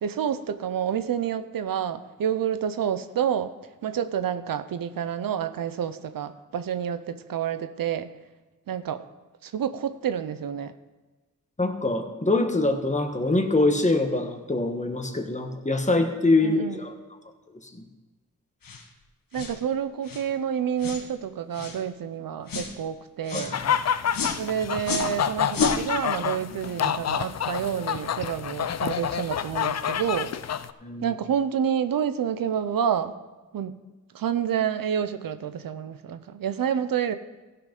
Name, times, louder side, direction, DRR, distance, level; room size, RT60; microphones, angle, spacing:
voice 1, 0.0-3.5 3.8-8.1 8.7-9.0 9.4-10.7 16.4-16.8 19.3-23.6 24.4-30.3 31.0-33.2 33.5-33.8 34.1-37.1, right 8 dB, 90° right, 10 dB, 0.7 m, -28 dB
voice 2, 11.6-16.9 17.7-17.8 23.3-23.6 30.8-31.1, left 2 dB, 20° left, 4 dB, 1.3 m, -24 dB
sound 1, 18.6-18.8 19.3-19.6 20.0-20.3 20.8-21.1 21.5-21.8 22.5-22.7 23.3-23.5 24.1-24.4 24.8-25.1 25.5-25.8, left 5 dB, 80° left, 1.4 m, -30 dB
sound 2, 23.5-30.7, left 8 dB, 50° left, 0.5 m, -28 dB
15.5 x 5.9 x 5.3 m, 1.2 s
wide cardioid pair, 100°, 33 cm